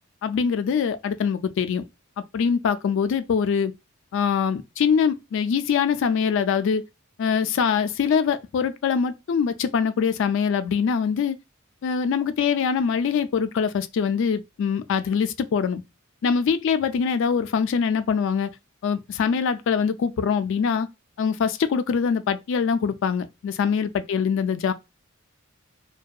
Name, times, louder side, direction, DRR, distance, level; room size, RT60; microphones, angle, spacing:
voice 1, 0.2-1.8 2.3-3.7 4.1-6.8 7.2-11.4 11.8-15.8 16.2-18.5 18.8-20.9 21.2-24.7, left 6 dB, 60° left, 0.3 m, -23 dB
2.6 x 2.2 x 2.3 m
head